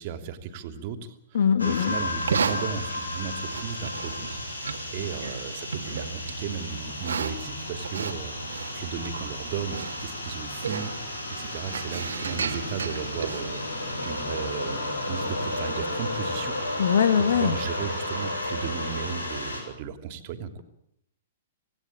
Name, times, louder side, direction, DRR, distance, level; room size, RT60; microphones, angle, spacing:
voice 1, 0.0-8.4 8.7-13.6 14.0-16.6 17.3-20.6, right 7 dB, 45° right, 8 dB, 2.9 m, -35 dB
voice 2, 1.3-1.9 16.8-17.6, left 7 dB, 65° left, 12 dB, 1.7 m, -21 dB
sound 1, 1.6-19.6, left 1 dB, 85° left, 7.4 m, -33 dB
Livestock farm animals working animals, 2.1-14.3, right 5 dB, 75° right, 2.2 m, -35 dB
26.5 x 18.0 x 8.9 m, 0.79 s
figure-of-eight pair, 115°, 0 cm